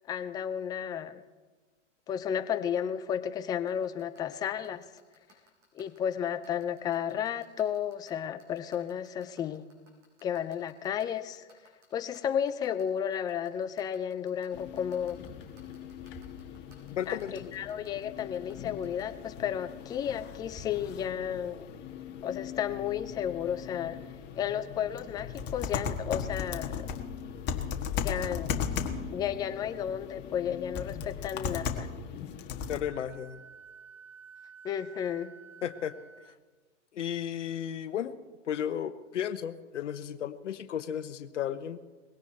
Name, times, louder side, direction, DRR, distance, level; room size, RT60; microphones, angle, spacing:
voice 1, 0.1-1.2 2.1-4.8 5.7-9.6 10.2-11.5 11.9-15.2 17.1-17.2 17.5-21.7 22.2-24.0 24.4-26.9 28.0-28.6 29.1-31.9 34.6-35.3, left 9 dB, 10° left, 11 dB, 0.4 m, -33 dB
sound 1, 3.5-19.0, right 2 dB, 35° right, 6.6 m, -59 dB
sound 2, 14.5-32.8, left 7 dB, 30° left, 1.6 m, -38 dB
voice 2, 17.0-17.5 32.7-33.4 35.6-35.9 36.9-38.1 38.5-41.8, left 9 dB, 75° left, 11 dB, 0.9 m, -34 dB
Wind instrument woodwind instrument, 32.9-36.4, right 6 dB, 85° right, 1.4 m, -51 dB
20.0 x 17.0 x 4.3 m, 1.4 s
hypercardioid pair, 125°, 37 cm